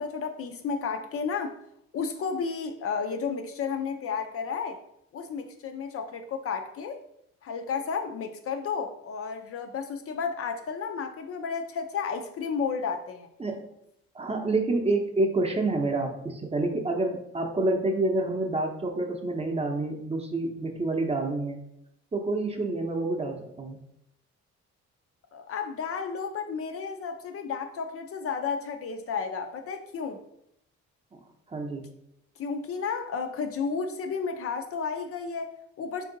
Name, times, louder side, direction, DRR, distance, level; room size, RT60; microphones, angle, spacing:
voice 1, 0.0-1.6 1.9-4.8 5.1-7.0 7.4-13.3 25.3-30.2 32.4-36.0, left 5 dB, 50° left, 0.4 m, -32 dB
voice 2, 14.1-21.6 22.1-23.8 31.5-31.8, right 2 dB, 20° right, 0.6 m, -28 dB
3.5 x 2.6 x 3.8 m
cardioid pair, 90°, 30 cm